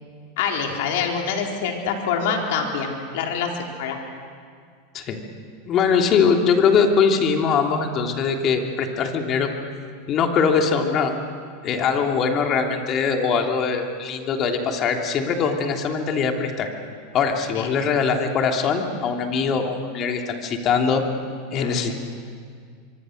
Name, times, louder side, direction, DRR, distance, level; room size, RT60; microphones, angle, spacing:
voice 1, 0.4-4.0 17.5-17.7 21.5-22.0, left 6 dB, 70° left, 1 dB, 4.1 m, -26 dB
voice 2, 5.7-9.5 10.1-11.1 11.6-16.7 17.1-21.0 21.5-22.0, left 6 dB, 40° left, 3 dB, 3.1 m, -22 dB
24.5 x 24.0 x 6.6 m, 2.1 s
hypercardioid pair, 105°, 0 cm